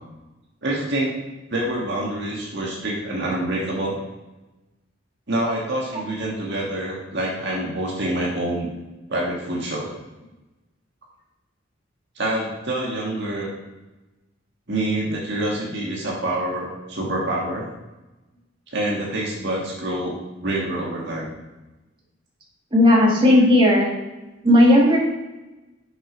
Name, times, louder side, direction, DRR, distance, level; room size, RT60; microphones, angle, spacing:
voice 1, 0.6-1.2 1.5-3.9 5.3-8.7 9.1-9.9 12.1-13.5 14.7-17.7 18.7-21.3, right 1 dB, 60° right, -3 dB, 1.8 m, -26 dB
voice 2, 22.7-23.9 24.4-25.0, left 1 dB, 25° right, -3 dB, 2.0 m, -14 dB
7.5 x 5.2 x 5.2 m, 1.1 s
head